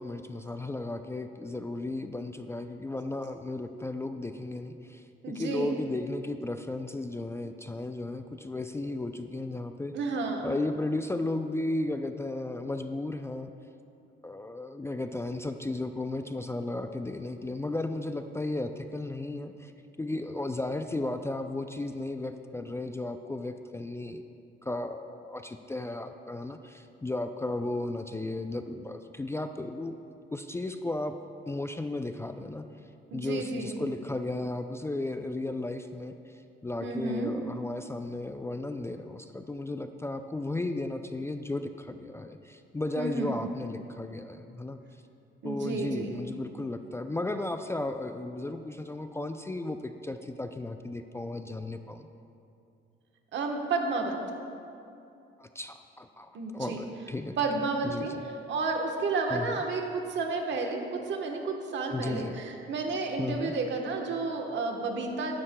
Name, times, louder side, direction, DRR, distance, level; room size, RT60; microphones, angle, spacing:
voice 1, 0.0-9.9 10.4-13.5 14.2-19.7 20.0-24.2 24.6-30.0 30.3-31.1 31.5-32.7 33.1-36.1 36.6-44.8 45.4-52.1 55.4-57.4 57.8-58.1 59.3-59.6 61.9-62.4 63.2-63.5, left 2 dB, 15° left, 7 dB, 0.3 m, -34 dB
voice 2, 5.2-5.8 9.9-10.5 33.1-33.8 36.8-37.3 43.0-43.4 45.4-46.2 53.3-54.2 56.3-56.8 57.4-65.3, right 3 dB, 65° right, 3 dB, 1.1 m, -31 dB
12.0 x 10.0 x 2.2 m, 2.6 s
cardioid pair, 90°, 20 cm